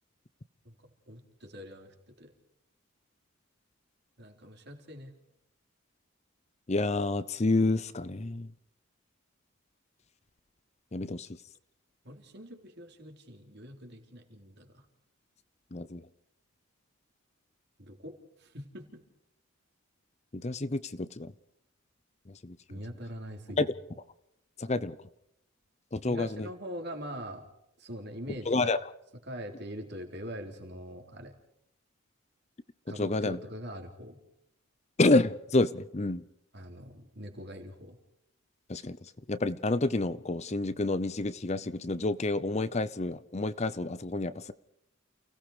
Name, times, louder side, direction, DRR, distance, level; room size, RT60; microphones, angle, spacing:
voice 1, 1.1-2.3 4.2-5.1 12.0-14.9 17.8-19.0 22.7-23.7 26.0-27.5 27.8-28.5 29.3-31.3 32.9-34.2 36.5-38.0, equal, 55° right, 3 dB, 3.8 m, -43 dB
voice 2, 6.7-8.5 10.9-11.3 15.7-16.0 20.3-21.3 22.4-22.6 23.6-23.7 24.6-25.0 25.9-26.5 28.5-28.8 33.0-33.4 35.0-36.2 38.7-39.0 39.3-44.5, left 2 dB, 30° left, 15 dB, 0.7 m, -28 dB
29.5 x 18.0 x 5.0 m, 0.78 s
head